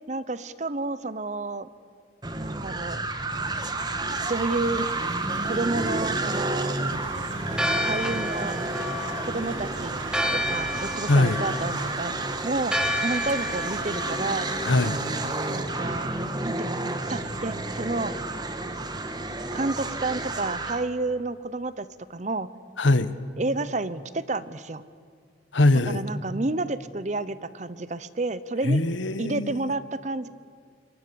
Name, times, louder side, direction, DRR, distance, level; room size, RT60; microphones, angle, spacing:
voice 1, 0.1-1.7 2.4-3.0 4.3-4.9 5.4-6.8 7.9-8.6 9.3-10.0 10.5-12.2 12.4-14.5 15.5-16.1 16.4-18.1 19.5-22.5 23.4-24.8 25.9-28.8 29.2-30.3, right 2 dB, 40° right, 15 dB, 0.8 m, -30 dB
sound 1, 2.2-20.9, right 2 dB, 20° right, 1.4 m, -31 dB
Engine, 4.1-15.6, right 4 dB, 85° right, 0.9 m, -42 dB
Church bell, 7.5-16.4, equal, 5° right, 1.3 m, -32 dB
voice 2, 11.1-11.4 14.6-15.0 22.8-23.1 25.5-26.0 28.6-29.7, left 2 dB, 75° left, 13 dB, 1.1 m, -21 dB
29.0 x 23.5 x 7.0 m, 2.1 s
head